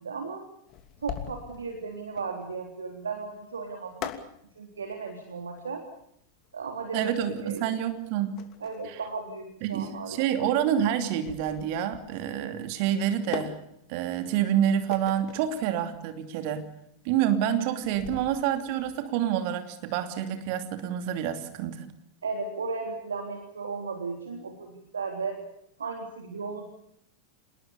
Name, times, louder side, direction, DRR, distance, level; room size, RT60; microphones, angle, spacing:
voice 1, 0.0-0.4 1.0-4.1 4.6-5.8 6.5-7.1 7.4-7.6 8.6-10.4 22.2-25.4 25.8-26.6, right 4 dB, 70° right, 4 dB, 3.6 m, -35 dB
sound 1, 0.7-19.0, left 9 dB, 35° left, 2.9 m, -43 dB
voice 2, 6.9-8.4 8.9-9.0 9.6-13.6 13.9-16.7 17.0-21.9, right 10 dB, 45° right, 8 dB, 2.8 m, -28 dB
28.0 x 20.5 x 7.1 m, 0.74 s
figure-of-eight pair, 90°, 0 cm